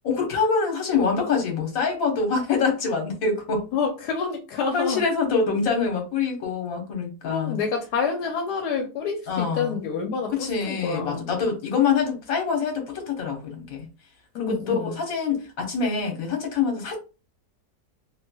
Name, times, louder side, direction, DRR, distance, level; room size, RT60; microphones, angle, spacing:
voice 1, 0.0-3.6 4.7-7.6 9.3-9.8 10.3-13.9 14.4-17.0, left 5 dB, 60° left, 2 dB, 1.4 m, -25 dB
voice 2, 3.7-5.0 7.2-11.3 14.3-14.9, left 5 dB, 85° left, 3 dB, 1.1 m, -28 dB
3.1 x 3.0 x 2.2 m, 0.31 s
omnidirectional pair, 1.7 m